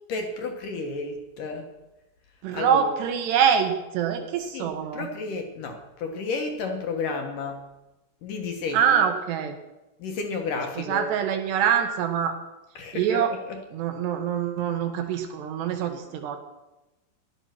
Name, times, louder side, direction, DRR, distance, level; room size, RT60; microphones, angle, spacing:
voice 1, 0.1-1.7 2.5-2.9 4.5-7.6 8.2-9.1 10.0-11.1 12.8-13.6, left 4 dB, 60° left, 4 dB, 2.3 m, -32 dB
voice 2, 2.4-5.1 8.7-9.6 10.8-12.4 12.9-13.4 13.7-16.4, right 8 dB, 65° right, 6 dB, 3.5 m, -24 dB
17.5 x 12.0 x 6.0 m, 1.0 s
omnidirectional pair, 5.6 m